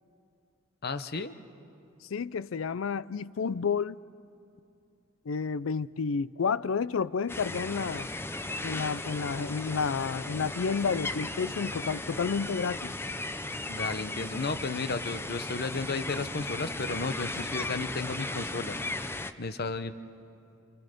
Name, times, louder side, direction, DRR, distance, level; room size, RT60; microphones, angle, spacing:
voice 1, 0.8-1.3 13.7-18.8 19.4-19.9, left 3 dB, 50° left, 0.9 m, -33 dB
voice 2, 2.1-4.0 5.3-8.1 8.6-12.9, left 5 dB, 70° left, 0.5 m, -30 dB
sound 1, 7.3-19.3, left 2 dB, 10° left, 0.6 m, -36 dB
28.5 x 28.0 x 5.3 m
head